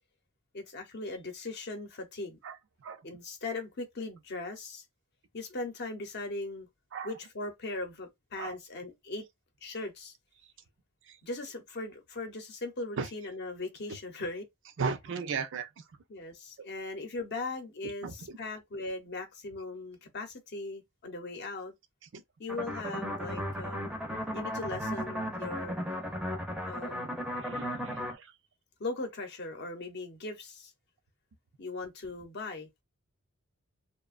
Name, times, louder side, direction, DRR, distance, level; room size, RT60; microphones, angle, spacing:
voice 1, 0.5-2.4 3.0-4.8 5.3-6.7 7.0-9.2 9.6-10.1 11.2-14.4 16.1-21.7 22.4-24.0 24.3-25.8 26.7-27.3 28.8-30.7 31.6-32.8, left 2 dB, 50° left, 0.7 m, -39 dB
voice 2, 14.8-15.8 16.6-16.7 18.0-18.4 22.1-22.2 27.4-28.3, right 5 dB, 60° right, 0.5 m, -36 dB
sound 1, 22.5-28.1, equal, 5° right, 0.6 m, -35 dB
2.8 x 2.1 x 2.4 m
head